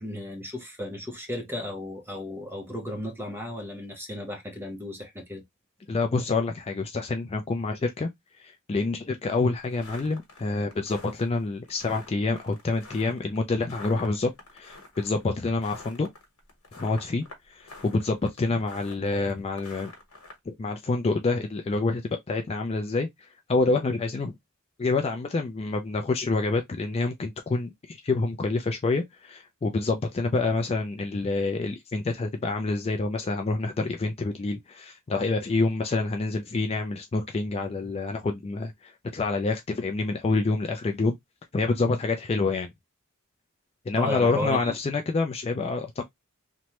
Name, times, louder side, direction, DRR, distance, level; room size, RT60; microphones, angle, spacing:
voice 1, 0.0-5.4 44.0-44.7, left 1 dB, 10° right, 0.7 m, -34 dB
voice 2, 5.9-8.1 8.4-16.1 16.8-19.9 20.5-24.3 24.8-41.2 41.5-42.7 43.9-46.0, left 3 dB, 30° left, 0.3 m, -27 dB
sound 1, 9.4-20.4, left 2 dB, 85° left, 1.1 m, -47 dB
3.0 x 2.2 x 2.8 m
head